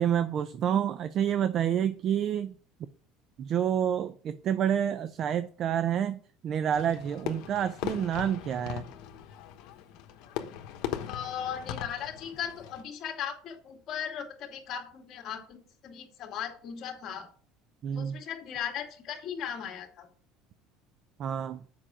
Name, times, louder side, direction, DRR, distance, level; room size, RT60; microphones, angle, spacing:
voice 1, 0.0-2.5 3.4-8.9 17.8-18.2 21.2-21.6, right 9 dB, 45° right, 13 dB, 0.5 m, -28 dB
Fireworks, 6.7-12.8, left 10 dB, 70° left, 1.2 m, -39 dB
voice 2, 11.1-17.3 17.9-20.1, left 8 dB, 45° left, 3 dB, 2.0 m, -37 dB
7.6 x 5.6 x 4.9 m, 0.43 s
cardioid pair, 130°, 0 cm